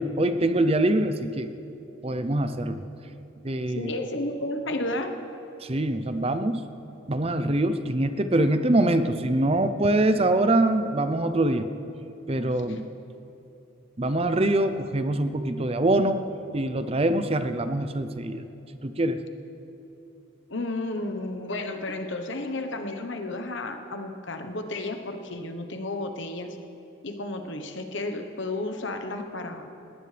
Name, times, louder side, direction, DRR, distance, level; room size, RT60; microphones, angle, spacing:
voice 1, 0.0-1.5 2.0-2.8 3.4-3.9 5.6-6.6 7.1-11.7 12.3-12.9 14.0-16.2 16.5-18.4 18.8-19.2, right 1 dB, 30° right, 10 dB, 0.6 m, -24 dB
voice 2, 3.7-5.2 12.7-12.8 20.5-26.6 27.0-29.7, left 2 dB, 60° left, 6 dB, 1.1 m, -32 dB
20.0 x 16.0 x 3.4 m, 2.9 s
head